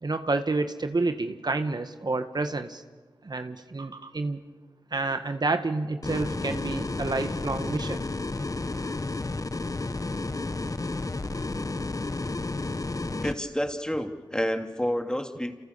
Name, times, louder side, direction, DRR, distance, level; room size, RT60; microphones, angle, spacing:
voice 1, 0.0-2.8 3.2-4.4 4.9-8.0, right 3 dB, 55° right, 8 dB, 1.7 m, -29 dB
sound 1, 6.0-13.3, left 2 dB, 45° left, 1.3 m, -31 dB
voice 2, 13.2-15.5, equal, 10° left, 5 dB, 2.9 m, -29 dB
29.0 x 27.5 x 7.0 m, 1.4 s
cardioid pair, 40°, 8 cm